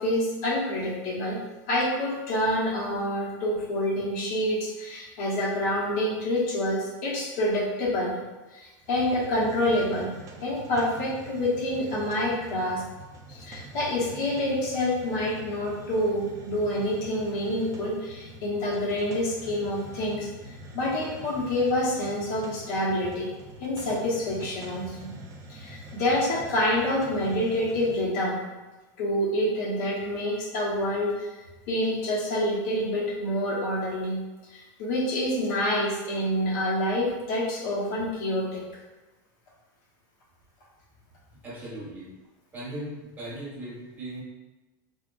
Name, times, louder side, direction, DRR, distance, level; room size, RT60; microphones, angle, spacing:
voice 1, 0.0-1.4 1.7-8.1 8.5-10.1 10.4-12.8 13.3-20.3 20.7-23.3 23.6-25.1 25.5-28.4 29.0-31.4 31.7-34.2 34.5-38.6, left 1 dB, 70° left, -4 dB, 1.0 m, -27 dB
Hiss, 8.8-28.1, right 1 dB, 30° right, 0.4 m, -45 dB
voice 2, 41.4-42.1 42.5-44.2, right 1 dB, 15° right, -7 dB, 1.2 m, -38 dB
3.6 x 2.4 x 2.5 m, 1.1 s
supercardioid pair, 140°, 10 cm